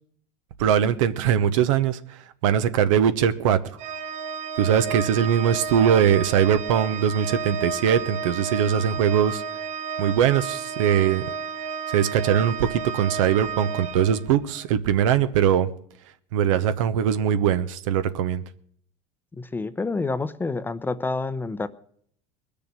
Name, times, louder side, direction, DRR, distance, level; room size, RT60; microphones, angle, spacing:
voice 1, 0.6-2.2 2.4-3.6 4.6-9.4 10.0-11.3 11.9-15.7 16.3-18.4, right 9 dB, 90° right, 12 dB, 1.0 m, -21 dB
Organ, 3.8-14.6, right 6 dB, 45° right, 0.9 m, -32 dB
voice 2, 19.4-21.7, left 3 dB, 10° left, 13 dB, 0.7 m, -28 dB
20.5 x 6.9 x 8.2 m, 0.64 s
supercardioid pair, 125°, 16 cm